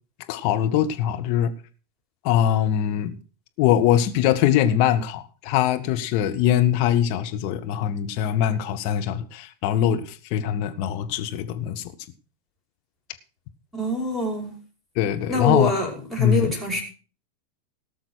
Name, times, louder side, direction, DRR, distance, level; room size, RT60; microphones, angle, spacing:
voice 1, 0.3-1.5 2.2-3.2 3.6-11.8 14.9-15.7 16.2-16.5, left 10 dB, 45° left, 1.6 m, -22 dB
voice 2, 13.7-14.5 15.3-16.8, equal, ahead, 5.4 m, -25 dB
18.0 x 6.5 x 6.4 m
figure-of-eight pair, 90°, 0 cm